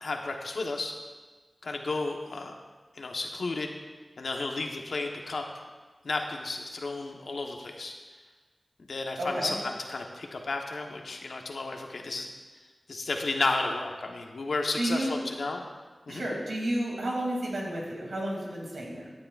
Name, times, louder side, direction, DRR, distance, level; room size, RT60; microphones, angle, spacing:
voice 1, 0.0-0.9 1.6-2.5 2.9-3.7 4.2-5.4 6.0-7.9 8.9-12.3 12.9-15.6 16.1-16.2, left 3 dB, 85° left, 2 dB, 1.0 m, -32 dB
voice 2, 9.2-9.5 14.8-15.2 16.1-19.1, right 1 dB, 90° right, -2 dB, 2.6 m, -31 dB
15.5 x 9.6 x 2.4 m, 1.4 s
cardioid pair, 45°, 0 cm